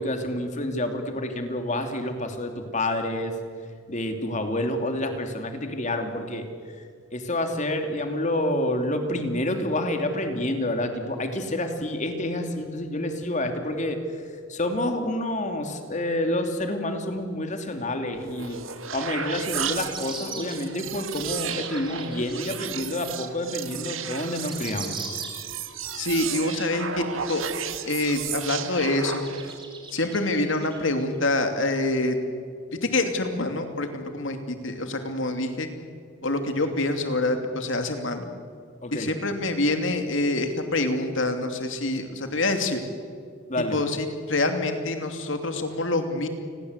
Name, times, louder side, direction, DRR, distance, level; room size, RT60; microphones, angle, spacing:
voice 1, 0.0-3.3 3.9-6.5 7.1-14.0 14.5-18.6 18.9-25.0 38.8-39.1 43.5-43.8, left 1 dB, 35° left, 5 dB, 2.8 m, -28 dB
sound 1, 18.2-29.6, right 8 dB, 85° right, 1.8 m, -34 dB
sound 2, 19.4-22.5 22.9-23.0 23.8-23.9 24.1-25.6 26.0-26.9 27.5-27.6 28.1-28.2 28.7-31.2 31.6-31.7, right 4 dB, 25° right, 3.7 m, -41 dB
voice 2, 25.9-27.4 27.9-29.2 29.9-32.2 32.8-35.7 36.2-38.3 38.9-42.8 43.7-46.3, left 2 dB, 70° left, 6 dB, 2.8 m, -26 dB
29.5 x 21.5 x 8.2 m, 2.2 s
head